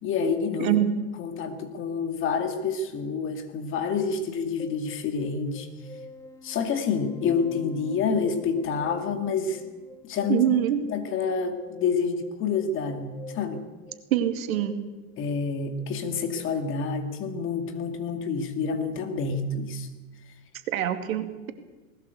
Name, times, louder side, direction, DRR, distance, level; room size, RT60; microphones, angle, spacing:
voice 1, 0.0-0.8 1.2-5.7 6.4-9.6 10.0-10.5 10.9-13.6 15.2-19.9, left 5 dB, 30° left, 7 dB, 2.2 m, -28 dB
voice 2, 0.6-0.9 10.3-10.8 14.1-14.8 20.7-21.5, right 11 dB, 70° right, 8 dB, 2.6 m, -24 dB
sound 1, 4.6-14.7, left 2 dB, 5° left, 1.7 m, -46 dB
19.5 x 17.5 x 8.2 m, 1.2 s
hypercardioid pair, 140°, 43 cm